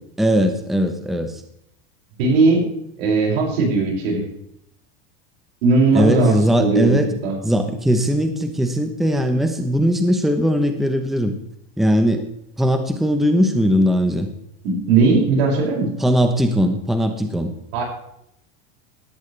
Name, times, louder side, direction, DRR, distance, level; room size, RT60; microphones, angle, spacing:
voice 1, 0.2-1.4 5.9-7.1 7.4-11.3 11.8-12.3 12.6-14.3 16.0-17.5, equal, ahead, 6 dB, 0.9 m, -19 dB
voice 2, 2.2-2.6 3.0-4.3 5.6-7.4 14.6-15.9 17.7-17.8, right 3 dB, 75° right, -1 dB, 6.4 m, -18 dB
17.5 x 12.5 x 3.4 m, 0.77 s
supercardioid pair, 155°, 30 cm